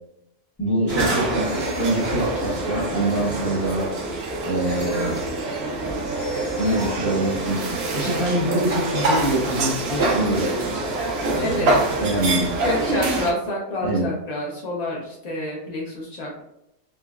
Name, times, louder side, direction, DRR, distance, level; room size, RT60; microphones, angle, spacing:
voice 1, 0.6-3.9 4.4-5.2 6.6-10.4 11.3-12.5 13.8-14.1, right 1 dB, 20° left, -5 dB, 0.7 m, -25 dB
sound 1, 0.9-13.3, right 2 dB, 60° right, 0.7 m, -25 dB
sound 2, 1.4-2.2 4.6-5.3 6.1-7.4, left 4 dB, 60° left, 1.0 m, -44 dB
voice 2, 11.4-11.7 12.6-16.4, left 1 dB, 75° left, -3 dB, 0.3 m, -28 dB
3.6 x 2.0 x 2.3 m, 0.85 s
omnidirectional pair, 1.5 m